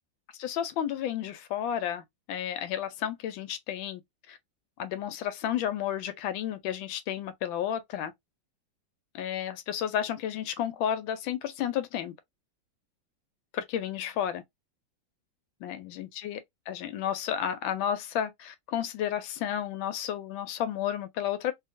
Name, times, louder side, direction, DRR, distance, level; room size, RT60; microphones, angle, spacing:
voice 1, 0.4-4.0 4.3-4.4 4.8-8.1 9.1-12.1 13.5-14.4 15.6-16.4 16.7-21.5, left 10 dB, 85° left, 1.3 m, -32 dB
2.8 x 2.6 x 2.5 m
omnidirectional pair, 2.1 m